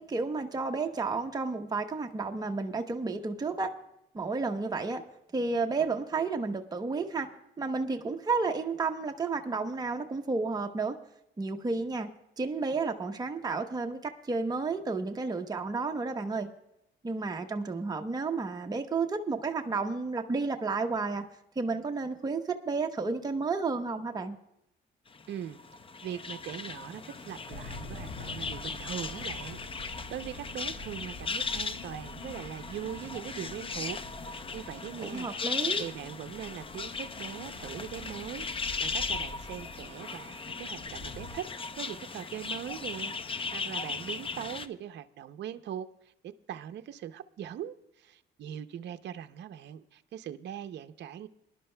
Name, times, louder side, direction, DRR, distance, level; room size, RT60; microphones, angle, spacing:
voice 1, 0.0-3.7 4.1-5.0 5.3-7.3 7.6-11.0 11.4-12.1 12.4-16.5 17.0-21.2 21.6-24.4 35.0-35.8, right 4 dB, 20° right, 0.8 m, -31 dB
sound 1, 25.1-44.7, left 4 dB, 25° left, 0.6 m, -37 dB
voice 2, 25.3-25.6 26.0-34.0 34.2-35.3 35.8-41.5 41.8-51.3, right 10 dB, 60° right, 0.6 m, -41 dB
sound 2, 27.5-41.4, left 2 dB, 55° left, 1.7 m, -47 dB
21.5 x 11.0 x 2.2 m
cardioid pair, 90°, 20 cm